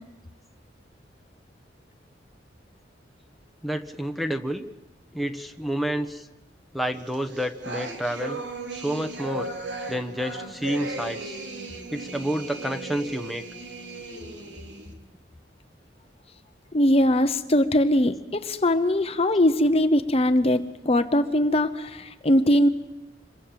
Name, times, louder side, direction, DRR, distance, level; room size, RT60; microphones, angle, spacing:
voice 1, 3.6-4.6 5.1-6.3 6.7-8.4 8.7-9.5 9.9-11.4 11.9-13.4, equal, ahead, 5 dB, 1.2 m, -29 dB
sound 1, 7.1-14.9, right 2 dB, 75° right, 3.4 m, -37 dB
voice 2, 16.7-22.7, left 1 dB, 35° left, 10 dB, 0.9 m, -21 dB
27.0 x 23.0 x 7.6 m, 1.1 s
head